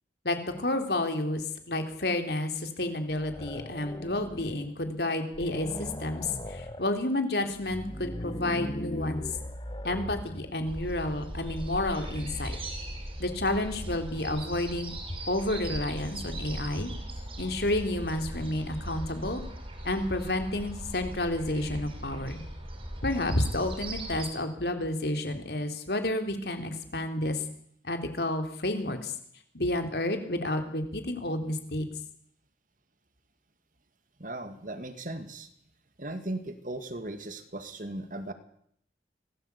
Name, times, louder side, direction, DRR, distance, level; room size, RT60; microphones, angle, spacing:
voice 1, 0.2-9.3 9.8-12.6 13.2-14.9 15.3-16.9 17.4-19.4 19.8-22.4 23.0-27.4 27.8-29.1 29.5-31.9, left 1 dB, 65° left, 6 dB, 3.5 m, -30 dB
sound 1, 3.1-4.6 5.0-5.1 5.3-6.9 7.5-10.6, left 1 dB, 25° left, 1.5 m, -38 dB
sound 2, 10.7-24.3, right 1 dB, 30° right, 5.4 m, -39 dB
voice 2, 34.2-35.5 36.0-38.3, right 1 dB, 45° right, 9 dB, 2.2 m, -37 dB
25.0 x 18.5 x 8.4 m, 0.69 s
head